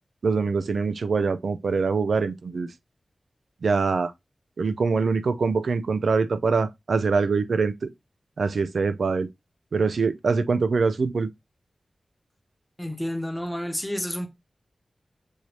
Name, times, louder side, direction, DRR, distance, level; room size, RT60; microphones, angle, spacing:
voice 1, 0.2-2.7 3.6-4.1 4.6-7.9 8.4-9.3 9.7-11.3, right 4 dB, 80° right, 0.4 m, -24 dB
voice 2, 12.8-14.3, equal, 5° left, 1.0 m, -30 dB
6.4 x 2.8 x 3.0 m
cardioid pair, 55°, 0 cm